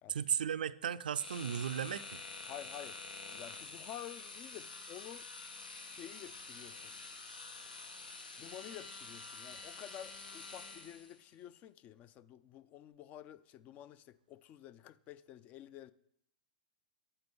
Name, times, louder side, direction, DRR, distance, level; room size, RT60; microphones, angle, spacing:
voice 1, 0.1-2.2, right 8 dB, 80° right, 0.3 m, -35 dB
sound 1, 1.1-11.2, left 3 dB, 90° left, 1.0 m, -48 dB
voice 2, 2.4-3.0 3.3-5.3 5.9-6.9 8.4-15.9, left 11 dB, 30° left, 0.3 m, -50 dB
8.1 x 4.3 x 5.3 m
hypercardioid pair, 125°, 5 cm